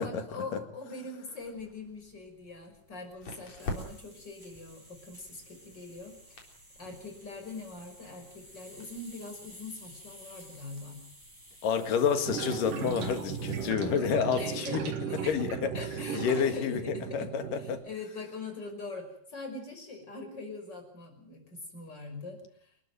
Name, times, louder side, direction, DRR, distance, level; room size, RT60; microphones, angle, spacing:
voice 1, 0.0-6.5 6.8-11.0 14.4-14.8 15.1-15.4 15.7-22.7, left 3 dB, 30° left, 4 dB, 6.3 m, -43 dB
sound 1, 1.4-13.7, equal, 5° right, 6.9 m, -54 dB
sound 2, 1.9-14.3, left 2 dB, 50° left, 4.9 m, -48 dB
voice 2, 11.6-14.8 15.3-15.9 16.1-17.8, left 7 dB, 75° left, 8 dB, 3.5 m, -29 dB
sound 3, 12.2-17.8, right 7 dB, 70° right, 3.7 m, -36 dB
27.5 x 13.0 x 9.2 m, 0.64 s
omnidirectional pair, 3.9 m